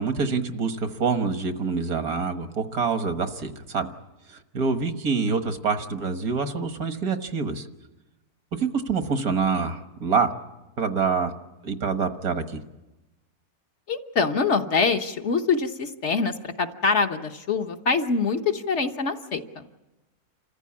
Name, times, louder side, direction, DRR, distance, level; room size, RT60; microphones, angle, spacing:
voice 1, 0.0-3.9 4.5-7.7 8.5-10.3 10.8-11.3 11.6-12.6, right 5 dB, 75° right, 8 dB, 1.8 m, -26 dB
voice 2, 13.9-19.7, left 4 dB, 55° left, 5 dB, 1.2 m, -25 dB
28.0 x 14.5 x 8.5 m, 1.0 s
omnidirectional pair, 1.6 m